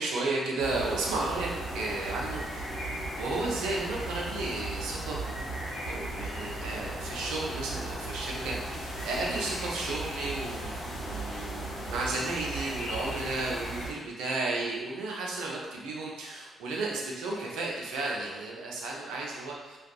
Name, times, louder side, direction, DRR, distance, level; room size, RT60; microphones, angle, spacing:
voice 1, 0.0-1.5 1.7-2.6 3.2-5.2 5.9-8.8 9.1-19.8, right 2 dB, 80° right, -2 dB, 0.4 m, -33 dB
sound 1, 0.6-13.9, right 1 dB, 75° left, 0.7 m, -36 dB
2.4 x 2.2 x 2.3 m, 1.2 s
hypercardioid pair, 45°, 0 cm